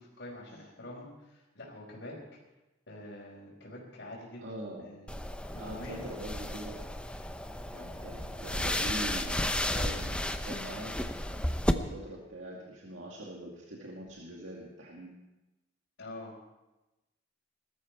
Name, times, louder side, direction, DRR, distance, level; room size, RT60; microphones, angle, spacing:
voice 1, 0.0-2.4 2.9-4.4 4.8-5.1 5.5-6.0 16.0-16.3, left 1 dB, 65° left, -7 dB, 4.4 m, -46 dB
voice 2, 4.4-4.9 5.6-6.9 7.7-11.0 11.7-15.1, right 1 dB, 75° right, -2 dB, 2.2 m, -43 dB
sound 1, 5.1-11.7, left 1 dB, 5° left, 0.7 m, -33 dB
19.5 x 13.0 x 4.5 m, 1.0 s
head